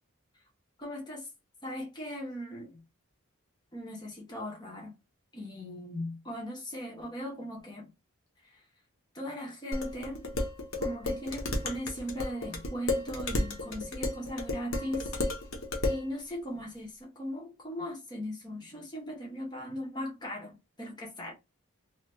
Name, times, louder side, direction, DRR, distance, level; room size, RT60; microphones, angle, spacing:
voice 1, 0.8-1.3 1.6-2.8 3.7-5.0 5.3-7.9 8.4-8.6 9.1-10.3 10.8-15.1 15.9-21.3, equal, 20° left, 1.1 m, -38 dB
Dishes pots and pans, 9.7-16.1, left 2 dB, 65° left, 0.9 m, -33 dB
3.2 x 2.9 x 2.2 m
head